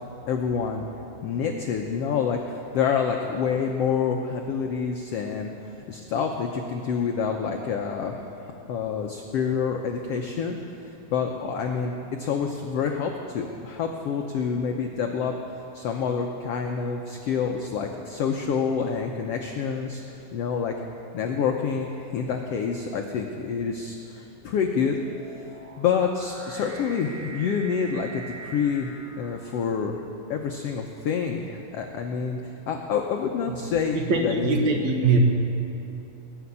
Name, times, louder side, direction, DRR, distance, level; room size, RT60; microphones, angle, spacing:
voice 1, 0.3-0.8 1.2-10.6 10.8-15.3 15.7-20.0 20.3-20.7 21.1-25.0 25.8-28.9 29.1-30.0 30.3-34.5, left 6 dB, 80° left, 2 dB, 1.4 m, -27 dB
sound 1, 23.8-30.1, right 3 dB, 20° right, 3.8 m, -45 dB
voice 2, 33.9-35.2, right 4 dB, 60° right, 1 dB, 2.6 m, -22 dB
21.0 x 7.1 x 9.6 m, 2.8 s
omnidirectional pair, 3.9 m